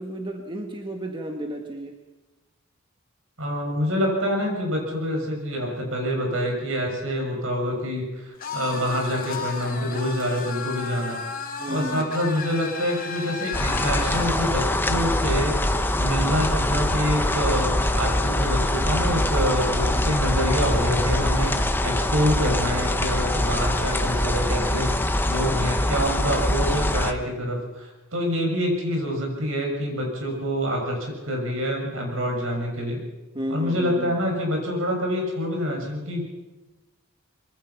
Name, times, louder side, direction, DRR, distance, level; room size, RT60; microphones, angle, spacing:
voice 1, 0.0-2.0 11.6-12.1 33.3-34.2, equal, 25° right, 3 dB, 1.7 m, -32 dB
voice 2, 3.4-11.3 11.7-15.6 16.0-21.5 21.8-33.0 33.5-36.3, equal, 70° right, 1 dB, 7.2 m, -26 dB
sound 1, 8.4-14.3, left 5 dB, 45° left, 4.4 m, -34 dB
sound 2, 13.5-27.1, left 1 dB, 10° left, 1.1 m, -23 dB
24.5 x 23.5 x 5.9 m, 1.1 s
head